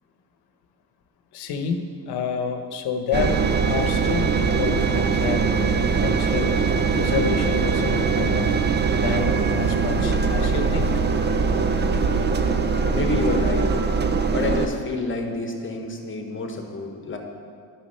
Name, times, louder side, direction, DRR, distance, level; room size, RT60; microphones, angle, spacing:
voice 1, 1.3-3.4 3.7-8.6 8.9-11.0, left 6 dB, 75° left, 7 dB, 1.0 m, -29 dB
Engine, 3.1-14.7, right 5 dB, 25° right, 0.6 m, -22 dB
voice 2, 12.9-13.7 14.3-17.2, left 3 dB, 30° left, 3 dB, 1.2 m, -28 dB
9.8 x 6.2 x 5.5 m, 2.2 s
cardioid pair, 110°, 39 cm